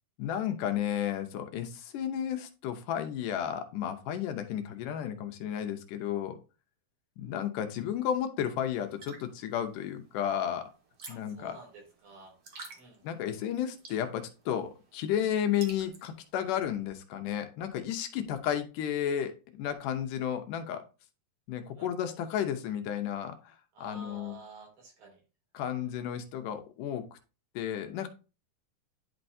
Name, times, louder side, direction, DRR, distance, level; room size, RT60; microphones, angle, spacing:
voice 1, 0.2-6.4 7.2-10.7 11.1-11.6 13.0-20.8 21.5-24.4 25.5-27.2 27.6-28.1, left 9 dB, 80° left, 6 dB, 2.4 m, -33 dB
sound 1, 8.8-16.3, right 4 dB, 80° right, 0.9 m, -52 dB
voice 2, 11.1-12.3 12.7-13.0 21.8-21.9 23.7-25.2 25.8-25.9, right 2 dB, 65° right, -1 dB, 4.2 m, -51 dB
10.5 x 4.5 x 2.7 m, 0.32 s
omnidirectional pair, 3.7 m